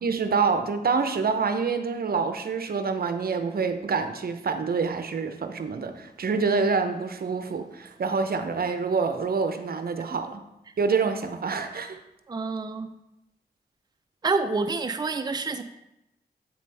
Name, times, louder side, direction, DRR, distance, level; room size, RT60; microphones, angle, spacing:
voice 1, 0.0-10.4 10.8-12.0, right 5 dB, 65° right, 8 dB, 0.6 m, -26 dB
voice 2, 12.3-12.9 14.2-15.6, right 4 dB, 25° right, 7 dB, 0.4 m, -27 dB
7.7 x 5.1 x 3.3 m, 0.89 s
cardioid pair, 50°, 17 cm